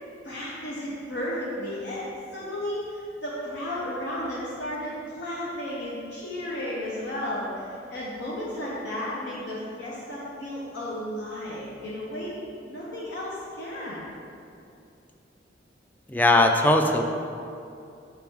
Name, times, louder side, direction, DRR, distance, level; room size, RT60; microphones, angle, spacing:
voice 1, 0.2-2.1 2.3-12.4 12.6-14.0, left 1 dB, 65° left, -6 dB, 0.8 m, -33 dB
voice 2, 16.1-17.0, left 2 dB, 10° left, 4 dB, 0.3 m, -19 dB
6.2 x 4.6 x 3.5 m, 2.5 s
head